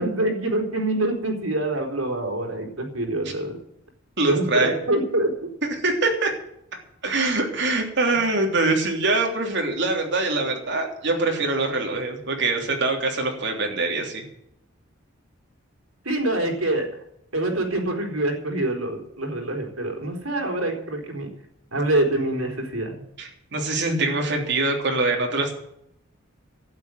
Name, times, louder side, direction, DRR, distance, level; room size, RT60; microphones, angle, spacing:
voice 1, 0.0-3.6 4.2-5.3 16.0-16.9 17.3-21.3 21.7-23.0, right 1 dB, 85° right, 2 dB, 4.1 m, -25 dB
voice 2, 4.2-4.8 5.6-6.3 7.0-14.2 23.2-25.6, right 2 dB, 60° right, 2 dB, 3.3 m, -24 dB
12.0 x 9.3 x 9.3 m, 0.74 s
head